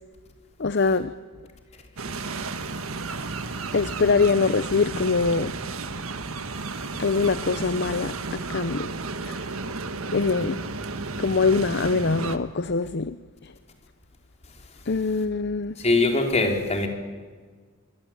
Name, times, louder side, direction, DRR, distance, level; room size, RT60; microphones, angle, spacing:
voice 1, 0.6-1.1 3.7-5.5 7.0-8.9 9.2-9.4 10.1-10.6 11.2-13.2 13.4-13.5 14.9-15.8, left 4 dB, 50° left, 13 dB, 0.7 m, -23 dB
sound 1, 2.0-12.4, right 3 dB, 75° right, 1.6 m, -33 dB
voice 2, 2.1-2.5 15.8-16.9, left 3 dB, 30° left, 3 dB, 4.0 m, -23 dB
25.0 x 24.5 x 9.0 m, 1.5 s
head